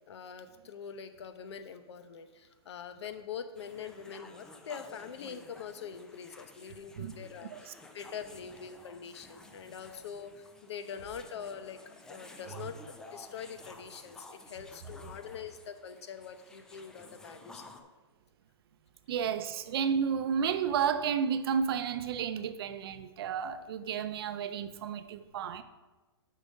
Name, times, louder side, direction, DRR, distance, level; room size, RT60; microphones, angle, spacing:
voice 1, 0.1-12.7 13.1-17.9, left 7 dB, 75° left, 0.8 m, -44 dB
sound 1, 3.6-17.8, left 2 dB, 5° left, 0.3 m, -53 dB
voice 2, 19.1-25.6, right 7 dB, 60° right, 0.6 m, -32 dB
7.1 x 5.6 x 5.2 m
hypercardioid pair, 155°, 14 cm